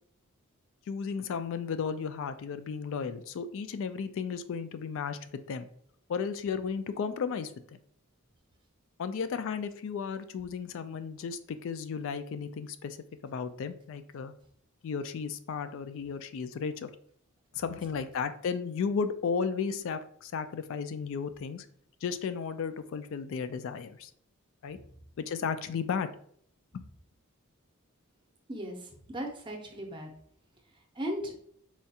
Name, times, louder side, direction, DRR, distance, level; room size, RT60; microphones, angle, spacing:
voice 1, 0.9-5.7 6.1-7.8 9.0-13.0 13.2-14.3 14.8-16.9 17.5-21.7 22.0-24.1 24.6-24.8 25.2-26.1 26.7-26.9, left 6 dB, 60° left, 11 dB, 0.3 m, -34 dB
voice 2, 28.5-30.1 30.9-31.3, equal, 20° right, 1 dB, 0.6 m, -37 dB
4.3 x 2.4 x 2.7 m, 0.63 s
head